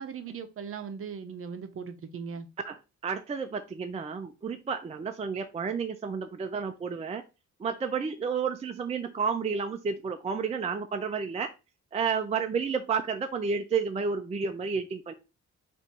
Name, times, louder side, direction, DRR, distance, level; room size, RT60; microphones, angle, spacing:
voice 1, 0.0-2.5, right 6 dB, 50° right, 0.7 m, -38 dB
voice 2, 2.6-7.2 7.6-11.5 11.9-15.1, right 5 dB, 20° right, 0.4 m, -31 dB
4.2 x 2.6 x 4.6 m
wide cardioid pair, 145°, 30 cm